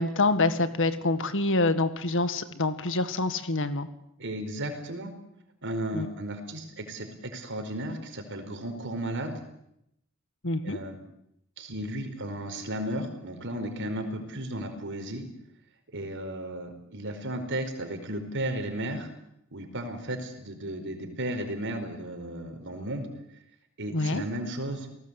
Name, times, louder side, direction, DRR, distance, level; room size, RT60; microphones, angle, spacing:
voice 1, 0.0-3.9 5.9-6.1 10.4-10.8 23.9-24.2, left 2 dB, 60° left, 11 dB, 1.9 m, -26 dB
voice 2, 4.2-5.1 5.6-9.4 10.6-11.0 11.6-15.3 15.9-19.1 19.5-23.1 23.8-24.9, right 1 dB, 55° right, 8 dB, 4.7 m, -34 dB
28.5 x 19.0 x 8.3 m, 0.79 s
head